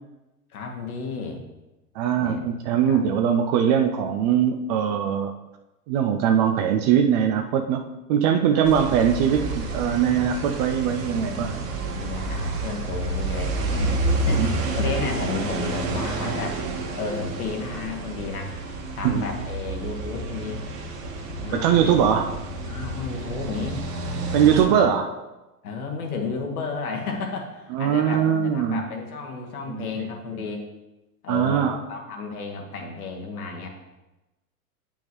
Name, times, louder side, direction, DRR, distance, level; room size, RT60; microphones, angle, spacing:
voice 1, 0.5-1.4 2.2-2.4 2.9-3.0 8.5-8.6 11.8-16.6 17.0-18.5 18.9-20.6 21.4-21.9 22.7-23.8 24.4-24.8 25.6-30.7 31.2-33.7, left 4 dB, 70° left, 1 dB, 1.6 m, -32 dB
voice 2, 2.0-5.3 5.9-11.6 14.4-14.5 19.0-19.3 21.5-22.3 24.3-25.1 27.7-28.8 29.7-30.1 31.3-31.8, right 8 dB, 30° right, 6 dB, 0.4 m, -21 dB
sound 1, 8.6-24.6, right 2 dB, 60° right, 1.6 m, -29 dB
9.2 x 5.4 x 3.0 m, 1.0 s
figure-of-eight pair, 90°, 46 cm